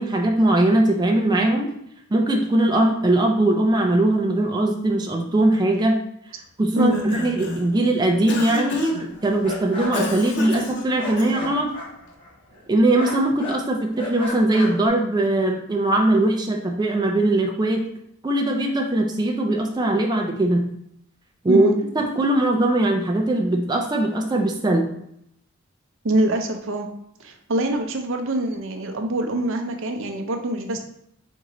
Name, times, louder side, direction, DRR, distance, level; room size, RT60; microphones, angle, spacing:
voice 1, 0.0-1.7 2.1-6.0 6.6-11.7 12.7-17.9 18.2-20.7 21.4-21.7 22.0-24.9, right 1 dB, 20° right, 1 dB, 0.4 m, -20 dB
Cough, 6.7-7.7 8.3-9.1 9.9-11.6, left 3 dB, 55° left, 0.6 m, -31 dB
voice 2, 6.8-7.1 21.5-21.8 26.0-26.9 27.2-30.8, right 1 dB, 65° right, 5 dB, 0.6 m, -24 dB
sound 1, 9.1-12.7 13.0-13.6 13.9-14.9, left 2 dB, 25° left, 1.1 m, -34 dB
4.4 x 3.7 x 3.0 m, 0.72 s
head